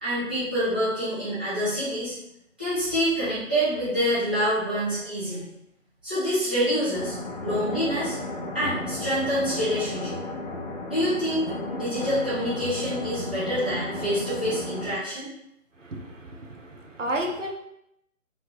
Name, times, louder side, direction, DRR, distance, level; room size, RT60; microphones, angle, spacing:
voice 1, 0.0-2.1 2.6-5.5 6.0-7.1 7.4-8.1 8.5-10.2 10.8-11.4 11.7-15.3, equal, 10° right, -13 dB, 0.6 m, -26 dB
sound 1, 6.9-14.9, left 2 dB, 35° left, 0.6 m, -33 dB
voice 2, 15.8-17.5, right 1 dB, 70° right, 2 dB, 0.9 m, -32 dB
4.2 x 3.2 x 2.9 m, 0.80 s
figure-of-eight pair, 145°, 39 cm